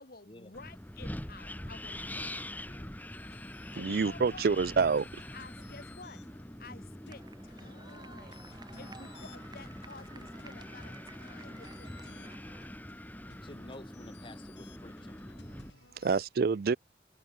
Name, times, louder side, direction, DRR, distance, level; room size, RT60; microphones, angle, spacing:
voice 1, 0.0-2.5 3.4-4.6 5.3-6.3 6.6-12.4, left 3 dB, 55° left, 1.8 m, -52 dB
Wind, 0.5-15.7, left 1 dB, 10° left, 2.4 m, -44 dB
voice 2, 2.3-2.9 13.2-15.2, left 1 dB, 30° left, 1.6 m, -51 dB
sound 1, 3.1-16.3, left 5 dB, 90° left, 6.5 m, -60 dB
voice 3, 3.8-5.0 16.0-16.8, right 5 dB, 55° right, 0.4 m, -27 dB
sound 2, 7.1-12.7, right 3 dB, 25° right, 2.9 m, -54 dB
head